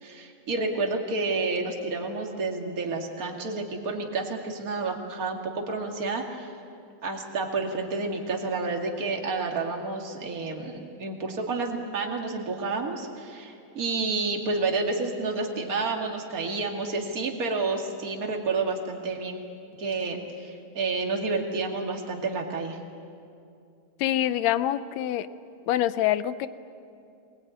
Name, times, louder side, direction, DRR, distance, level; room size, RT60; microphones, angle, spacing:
voice 1, 0.0-6.5 7.0-19.4 19.8-22.8, right 3 dB, 30° right, 1 dB, 2.3 m, -30 dB
voice 2, 24.0-25.3 25.7-26.5, left 12 dB, 75° left, 14 dB, 1.8 m, -25 dB
24.0 x 20.5 x 9.4 m, 2.5 s
omnidirectional pair, 3.4 m